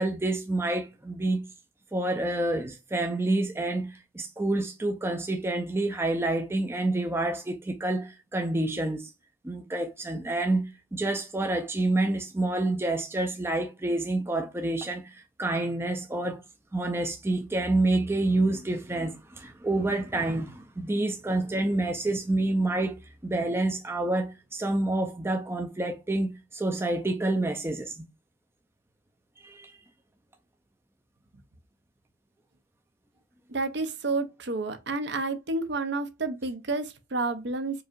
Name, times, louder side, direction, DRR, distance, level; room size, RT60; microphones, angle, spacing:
voice 1, 0.0-1.4 1.9-9.1 9.4-15.1 15.4-16.4 16.7-28.1 29.4-29.7, right 2 dB, 10° right, 0.4 m, -28 dB
voice 2, 33.5-37.8, right 3 dB, 55° right, 0.7 m, -30 dB
4.7 x 2.7 x 2.4 m
head